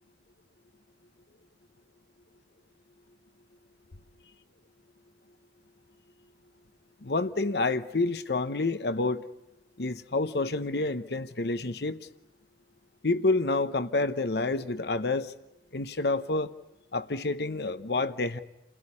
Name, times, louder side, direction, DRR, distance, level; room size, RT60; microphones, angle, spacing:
voice 1, 7.0-9.2 9.8-12.0 13.0-15.3 15.7-16.5 16.9-18.4, left 3 dB, 70° left, 12 dB, 0.9 m, -28 dB
29.0 x 17.5 x 9.8 m, 0.93 s
head